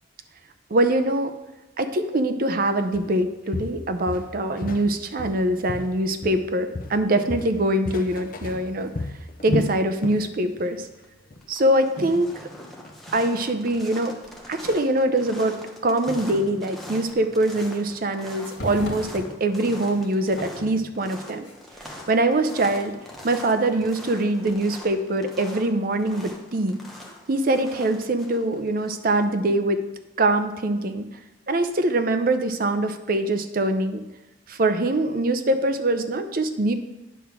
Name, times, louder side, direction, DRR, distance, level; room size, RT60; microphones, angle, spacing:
voice 1, 0.7-1.3 1.8-8.9 9.4-10.9 11.5-12.3 13.1-14.1 14.5-15.5 15.8-21.5 22.1-23.0 23.2-26.8 27.3-29.8 30.2-31.0 31.5-34.0 34.5-36.7, right 1 dB, 50° right, 8 dB, 0.6 m, -23 dB
Walk footsteps, 2.9-3.1 3.5-4.9 5.2-6.5 6.7-10.3 10.6-10.8 11.3-11.4, left 2 dB, 50° left, 0.7 m, -32 dB
sound 1, 8.1-8.9 9.4-9.9 10.6-10.7 12.0-13.9 14.2-14.3 15.6-15.7 16.1-18.0 18.3-22.1 22.6-24.2, equal, 65° left, 2.0 m, -40 dB
sound 2, 10.7-11.0 11.4-29.2, left 1 dB, ahead, 0.9 m, -43 dB
9.2 x 3.6 x 6.0 m, 1.0 s
head